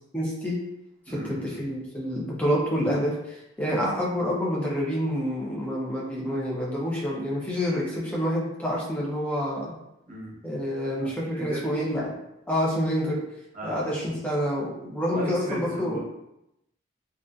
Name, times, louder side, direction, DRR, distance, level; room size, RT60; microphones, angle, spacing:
voice 1, 0.1-0.6 1.1-9.7 10.4-12.2 12.5-13.2 13.6-16.0, equal, 5° left, -5 dB, 0.4 m, -28 dB
voice 2, 1.1-1.6 10.1-10.3 11.0-11.8 13.5-13.9 15.1-16.0, right 1 dB, 40° right, -5 dB, 0.7 m, -36 dB
2.5 x 2.3 x 2.2 m, 0.86 s
head